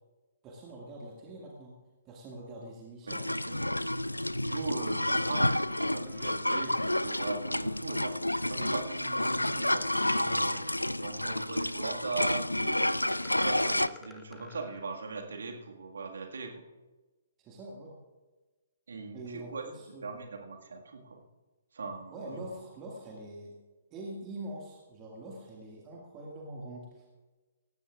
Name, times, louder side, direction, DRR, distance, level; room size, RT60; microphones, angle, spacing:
voice 1, 0.4-1.7 2.0-3.6 17.4-18.0 19.1-20.2 22.1-23.5 23.9-27.1, right 1 dB, 20° right, -2 dB, 1.9 m, -44 dB
sound 1, 3.1-13.9, left 1 dB, 85° left, 0.3 m, -30 dB
voice 2, 4.4-10.7 11.0-12.8 13.2-16.6 18.9-19.6 20.0-21.2 21.7-22.4, right 4 dB, 60° right, 3 dB, 1.8 m, -40 dB
sound 2, 4.7-4.9 6.1-6.9 7.4-7.5 8.3-8.4 9.0-9.1 9.6-9.7 10.5-11.0 12.8-14.9, left 4 dB, 10° left, 0.8 m, -53 dB
17.5 x 15.0 x 2.4 m, 1.2 s
figure-of-eight pair, 125°, 0 cm